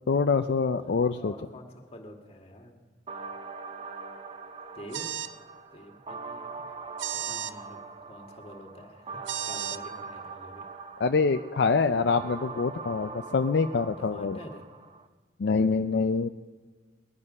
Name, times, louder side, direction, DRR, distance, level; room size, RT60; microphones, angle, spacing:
voice 1, 0.1-1.3 11.0-14.4 15.4-16.3, left 4 dB, 65° left, 8 dB, 0.5 m, -25 dB
voice 2, 0.8-2.8 4.7-5.2 5.7-6.7 7.1-7.8 8.1-10.7 14.0-14.7, equal, 35° left, 2 dB, 1.8 m, -47 dB
sound 1, 3.1-15.1, right 4 dB, 30° right, 0.8 m, -42 dB
sound 2, 4.9-5.4 7.0-7.5 9.3-9.8, right 10 dB, 85° right, 0.5 m, -33 dB
20.5 x 11.0 x 5.3 m, 1.4 s
head